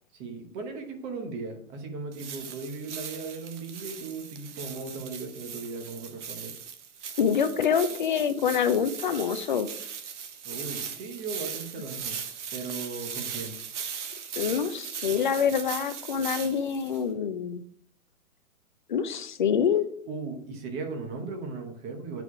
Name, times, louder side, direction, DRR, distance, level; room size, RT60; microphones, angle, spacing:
voice 1, 0.1-6.5 10.4-12.2 12.5-13.6 20.1-22.2, right 4 dB, 15° right, 4 dB, 0.9 m, -37 dB
sound 1, 2.1-17.0, right 7 dB, 50° right, 1.1 m, -39 dB
voice 2, 7.2-9.7 14.4-17.6 18.9-19.8, left 7 dB, 35° left, 10 dB, 0.5 m, -26 dB
9.3 x 4.9 x 4.8 m, 0.64 s
hypercardioid pair, 155°, 45 cm